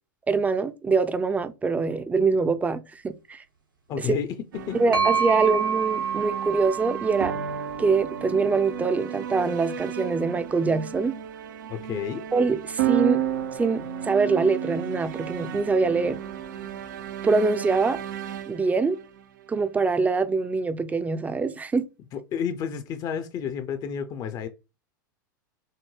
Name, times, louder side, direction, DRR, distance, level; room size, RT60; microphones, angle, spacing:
voice 1, 0.3-3.4 4.0-4.2 4.8-7.3 7.8-11.1 12.3-13.2 13.6-16.2 17.2-18.0 18.5-19.0 19.5-21.9, right 4 dB, 15° right, 0.5 m, -24 dB
voice 2, 3.9-4.8 11.7-12.2 22.1-24.5, left 8 dB, 35° left, 0.6 m, -31 dB
sound 1, 4.5-19.8, right 10 dB, 65° right, 0.6 m, -33 dB
sound 2, 4.9-8.7, right 7 dB, 85° right, 1.6 m, -28 dB
6.5 x 2.2 x 3.1 m
hypercardioid pair, 95°, 11 cm